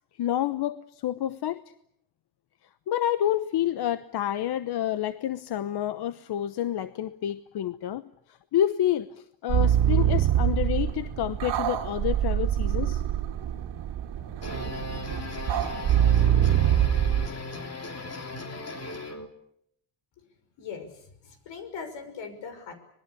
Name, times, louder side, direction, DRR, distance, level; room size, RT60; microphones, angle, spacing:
voice 1, 0.2-1.6 2.9-8.1 8.5-9.1 9.4-13.0, left 11 dB, 60° left, 13 dB, 1.0 m, -28 dB
sound 1, 9.5-17.3, right 10 dB, 65° right, 2.2 m, -24 dB
sound 2, 14.2-19.3, left 3 dB, 35° left, 3.5 m, -37 dB
voice 2, 20.6-22.7, left 6 dB, 80° left, 9 dB, 6.1 m, -40 dB
26.0 x 21.0 x 8.5 m, 0.72 s
cardioid pair, 120°, 44 cm